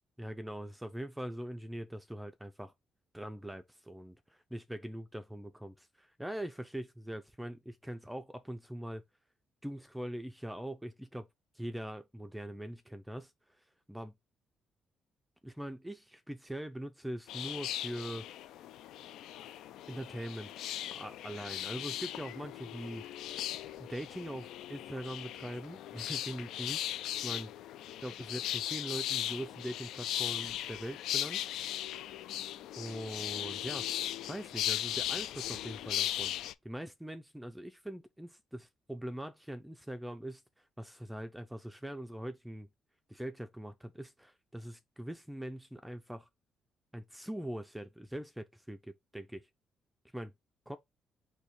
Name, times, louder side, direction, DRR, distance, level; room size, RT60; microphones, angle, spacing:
voice 1, 0.2-2.7 3.1-9.0 9.6-11.3 11.5-13.3 13.9-14.1 15.4-18.3 19.9-20.5 20.9-23.0 23.8-27.5 28.0-31.5 32.8-33.9 34.2-36.3 36.6-42.7 43.1-46.3 46.9-49.5 50.1-50.3 50.7-50.8, right 1 dB, 5° right, 0.4 m, -42 dB
sound 1, 17.3-36.5, left 12 dB, 90° left, 0.3 m, -38 dB
4.1 x 2.7 x 4.5 m
cardioid pair, 135°, 0 cm